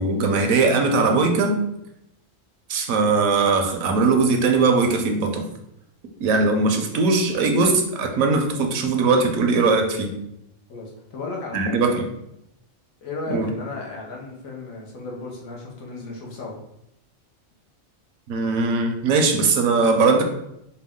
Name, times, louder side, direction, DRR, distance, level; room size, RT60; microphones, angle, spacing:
voice 1, 0.0-1.6 2.7-5.4 6.2-10.1 11.5-12.0 13.3-13.5 18.3-20.2, right 4 dB, 80° right, 4 dB, 1.1 m, -20 dB
voice 2, 10.7-11.8 13.0-16.5, left 3 dB, 85° left, -1 dB, 1.3 m, -34 dB
4.6 x 2.3 x 3.6 m, 0.82 s
omnidirectional pair, 1.4 m